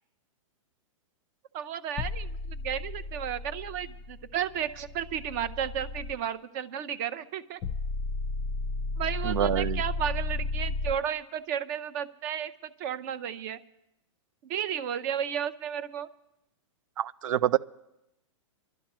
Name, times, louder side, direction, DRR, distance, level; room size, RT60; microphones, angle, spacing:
voice 1, 1.5-7.6 9.0-13.6 14.4-16.1, right 9 dB, 35° right, 13 dB, 0.6 m, -33 dB
sound 1, 2.0-6.1 7.6-10.9, left 3 dB, 20° left, 0.6 m, -34 dB
voice 2, 9.2-9.8 17.0-17.6, right 11 dB, 90° right, 16 dB, 0.4 m, -26 dB
27.5 x 12.0 x 3.0 m, 0.89 s
hypercardioid pair, 160°, 17 cm